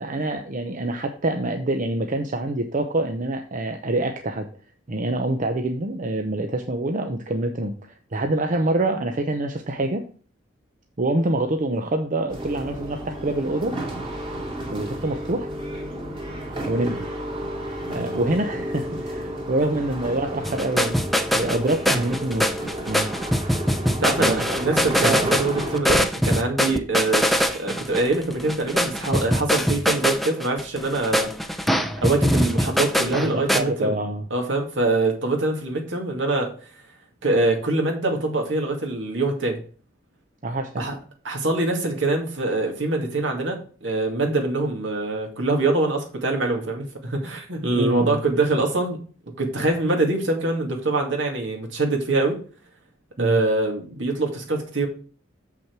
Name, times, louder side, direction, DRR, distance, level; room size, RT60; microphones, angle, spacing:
voice 1, 0.0-4.5 4.9-10.0 11.0-13.7 14.7-15.5 16.7-17.0 17.9-21.0 21.3-22.5 22.9-23.1 24.2-24.6 25.0-25.4 33.2-34.2 40.4-40.8 47.7-48.2 53.2-53.4, right 2 dB, 45° right, 5 dB, 0.7 m, -26 dB
sound 1, 12.3-25.8, right 1 dB, 30° right, 2.3 m, -32 dB
sound 2, 20.4-33.6, equal, ahead, 0.6 m, -23 dB
voice 2, 23.8-27.3 27.5-31.3 32.0-34.0 34.3-36.5 37.2-39.6 40.8-41.0 41.2-49.0 49.4-52.4 53.2-54.9, right 2 dB, 70° right, 2 dB, 2.2 m, -24 dB
7.5 x 6.0 x 4.6 m, 0.41 s
head